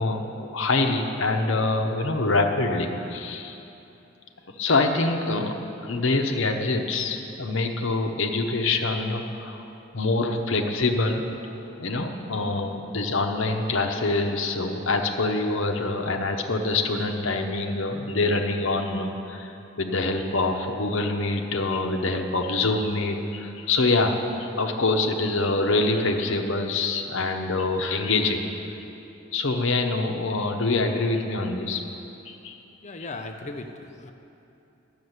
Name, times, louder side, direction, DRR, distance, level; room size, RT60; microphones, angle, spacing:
voice 1, 0.0-3.6 4.6-5.6 5.8-9.7 9.9-28.4 29.3-31.8 32.2-32.6, left 3 dB, 75° left, 3 dB, 0.9 m, -25 dB
voice 2, 32.8-34.1, left 2 dB, 35° left, 6 dB, 0.6 m, -37 dB
10.5 x 6.6 x 8.0 m, 2.9 s
head